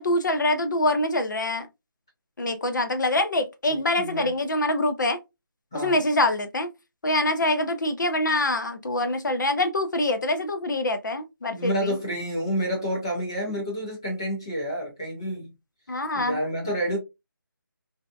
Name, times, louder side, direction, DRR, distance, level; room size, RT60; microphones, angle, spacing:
voice 1, 0.0-1.7 2.4-5.2 5.7-6.7 7.0-12.0 15.9-16.4, left 1 dB, 60° left, 0.6 m, -25 dB
voice 2, 4.0-4.3 5.7-6.0 11.5-15.5 16.1-17.0, equal, 10° left, 0.4 m, -29 dB
2.7 x 2.1 x 2.3 m
figure-of-eight pair, 170°, 12 cm